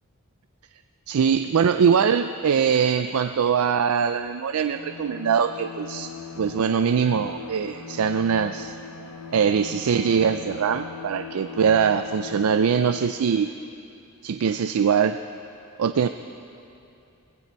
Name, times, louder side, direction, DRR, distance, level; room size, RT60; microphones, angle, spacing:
voice 1, 1.1-6.1 6.4-8.7 9.3-13.5 14.2-15.2 15.8-16.1, right 7 dB, 80° right, 10 dB, 0.4 m, -22 dB
Bowed string instrument, 4.6-13.2, left 5 dB, 85° left, 0.7 m, -40 dB
18.0 x 16.0 x 4.6 m, 2.7 s
head